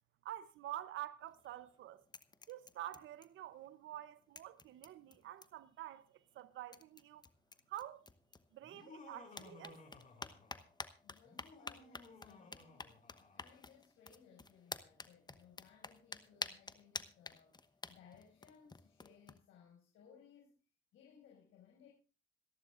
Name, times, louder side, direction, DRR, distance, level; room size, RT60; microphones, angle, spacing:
voice 1, 0.2-2.1 2.5-7.2 7.7-8.1 8.5-9.8, right 13 dB, 80° right, 0.8 m, -48 dB
sound 1, 1.2-1.8 2.1-3.7 3.9-4.0 4.4-5.7 6.4-6.5 6.7-8.9 9.3-19.4, left 3 dB, 20° left, 1.0 m, -50 dB
Laughter, 8.6-10.8 11.2-13.6, left 3 dB, 40° left, 5.7 m, -58 dB
voice 2, 11.0-17.6 17.9-20.5 20.9-21.9, left 7 dB, 85° left, 6.0 m, -63 dB
26.5 x 11.0 x 2.5 m
cardioid pair, 90°, 20 cm